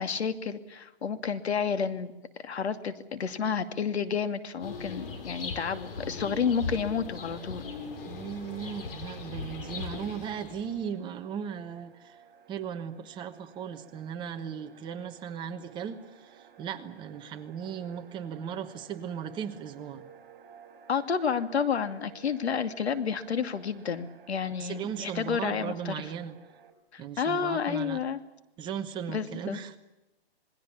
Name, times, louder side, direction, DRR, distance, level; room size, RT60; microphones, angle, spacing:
voice 1, 0.0-2.1 2.4-7.6 20.9-25.9 26.9-28.2 29.1-29.6, left 6 dB, 80° left, 10 dB, 2.7 m, -30 dB
sound 1, 4.6-10.9, left 4 dB, 60° left, 5.9 m, -39 dB
sound 2, 6.7-26.7, right 6 dB, 50° right, 5.4 m, -56 dB
voice 2, 8.1-12.2 12.5-20.0 24.6-26.4 27.0-28.0 28.6-29.8, right 8 dB, 15° right, 7 dB, 1.2 m, -37 dB
27.5 x 21.0 x 7.2 m, 0.96 s
hypercardioid pair, 155°, 32 cm